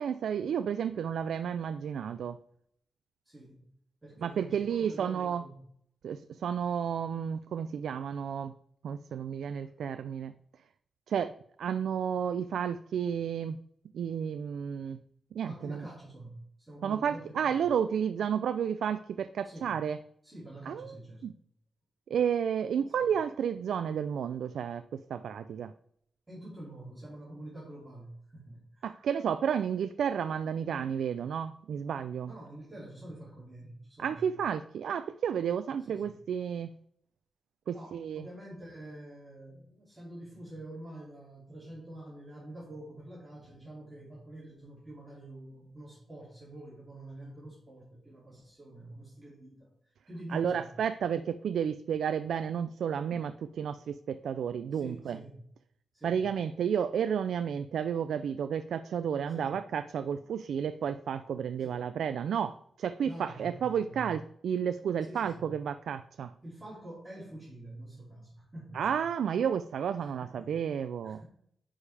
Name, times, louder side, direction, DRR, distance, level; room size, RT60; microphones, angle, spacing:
voice 1, 0.0-2.4 4.2-5.4 6.0-8.5 8.8-10.3 11.1-11.3 11.6-13.6 13.9-15.0 15.3-15.9 16.8-20.0 20.7-20.9 21.2-21.3 22.1-25.7 28.8-32.3 34.0-36.7 37.7-38.3 50.3-55.2 56.0-66.3 68.7-71.2, right 8 dB, 85° right, 11 dB, 0.3 m, -32 dB
voice 2, 3.3-3.7 4.0-5.7 15.4-17.6 19.4-19.8 20.2-21.3 22.9-23.1 26.3-28.9 32.3-34.3 35.9-36.2 37.7-49.7 50.1-50.7 54.7-55.4 55.9-56.2 59.3-59.5 61.6-61.9 63.0-64.1 65.0-65.5 66.4-68.8 70.0-70.5 71.0-71.2, right 1 dB, 15° right, -7 dB, 2.6 m, -47 dB
9.8 x 5.0 x 3.3 m, 0.68 s
wide cardioid pair, 140°, 0 cm